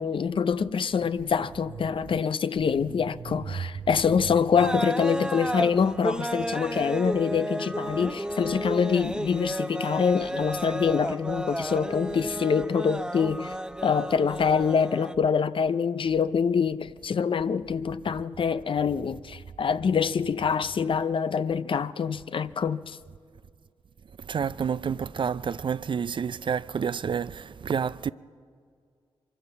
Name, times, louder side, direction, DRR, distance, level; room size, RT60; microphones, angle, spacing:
voice 1, 0.0-13.5 13.8-23.0, left 6 dB, 55° left, 0.6 m, -25 dB
sound 1, 4.5-15.1, right 1 dB, 10° right, 0.8 m, -32 dB
voice 2, 24.2-28.1, right 7 dB, 55° right, 0.4 m, -29 dB
23.5 x 13.5 x 8.1 m
cardioid pair, 60°, 10 cm